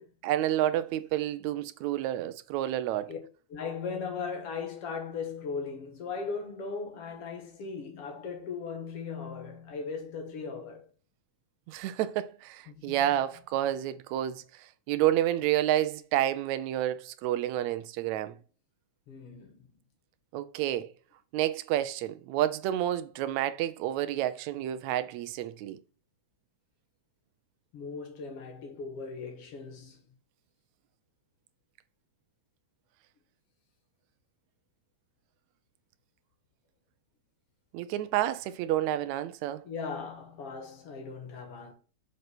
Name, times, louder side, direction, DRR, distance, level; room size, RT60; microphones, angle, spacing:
voice 1, 0.2-3.1 11.7-18.4 20.3-20.9 21.3-25.8 37.7-39.6, right 12 dB, 80° right, 1.9 m, -29 dB
voice 2, 3.5-10.9 12.7-13.2 19.1-19.7 27.7-30.1 39.6-41.7, left 5 dB, 55° left, 2.3 m, -38 dB
6.4 x 5.4 x 4.3 m
omnidirectional pair, 3.3 m